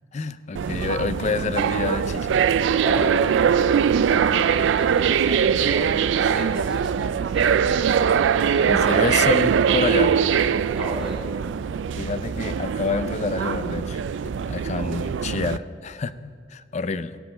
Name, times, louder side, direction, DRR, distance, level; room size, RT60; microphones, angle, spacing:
voice 1, 0.1-2.4 8.6-10.2 12.0-17.2, left 4 dB, 40° left, 13 dB, 0.4 m, -28 dB
sound 1, 0.6-15.6, right 7 dB, 85° right, 0.3 m, -22 dB
voice 2, 2.8-7.8 8.5-9.2 10.7-11.3, left 1 dB, 5° right, -6 dB, 2.8 m, -36 dB
17.0 x 7.6 x 5.6 m, 2.1 s
head